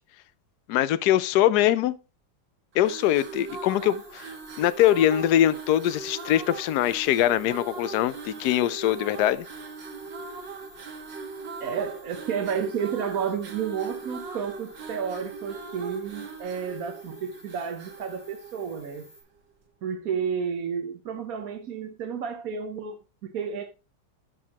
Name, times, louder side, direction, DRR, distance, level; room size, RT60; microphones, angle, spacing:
voice 1, 0.7-1.9 2.7-4.3 4.6-9.5, left 12 dB, 70° left, 1.1 m, -22 dB
sound 1, 2.7-19.2, right 4 dB, 85° right, 2.3 m, -40 dB
sound 2, 2.9-19.2, left 1 dB, 35° left, 4.5 m, -53 dB
voice 2, 11.6-19.1 19.8-23.6, right 7 dB, 60° right, 1.2 m, -31 dB
12.0 x 6.3 x 2.9 m
omnidirectional pair, 1.9 m